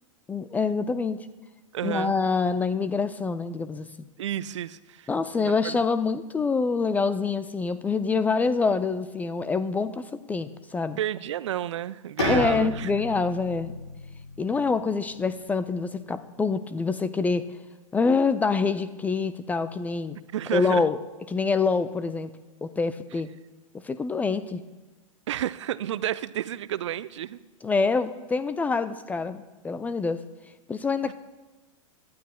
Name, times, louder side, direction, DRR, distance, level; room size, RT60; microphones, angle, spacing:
voice 1, 0.3-1.3 1.8-3.9 5.1-11.0 12.3-13.7 14.4-17.4 17.9-20.2 20.5-21.0 21.3-22.3 22.6-23.3 23.8-24.6 27.6-30.2 30.7-31.1, left 4 dB, 10° left, 13 dB, 0.3 m, -26 dB
voice 2, 1.7-2.2 4.2-5.1 5.4-5.8 11.0-12.9 20.3-20.8 25.3-27.4 31.0-31.1, right 11 dB, 60° right, 17 dB, 0.4 m, -31 dB
Bowed string instrument, 12.2-15.8, left 1 dB, 60° left, 5.2 m, -33 dB
24.5 x 12.5 x 2.2 m, 1.2 s
figure-of-eight pair, 100°, 17 cm